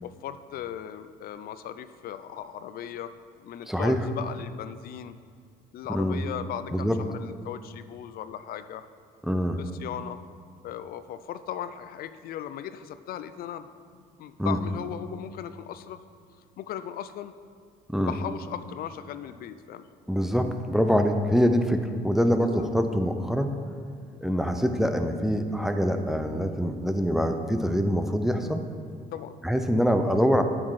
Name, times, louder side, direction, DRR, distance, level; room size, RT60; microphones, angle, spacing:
voice 1, 0.0-3.1 3.4-5.1 5.7-8.8 9.6-10.2 10.6-16.0 16.6-17.3 17.9-19.9 22.6-22.7 29.1-29.4, left 10 dB, 65° left, 12 dB, 0.4 m, -38 dB
voice 2, 3.7-4.0 5.9-6.2 6.7-7.0 9.3-9.6 14.4-14.6 17.9-18.1 20.1-23.5 24.2-28.6 29.4-30.4, equal, ahead, 6 dB, 0.5 m, -24 dB
8.7 x 6.0 x 4.8 m, 2.2 s
cardioid pair, 110°, 17 cm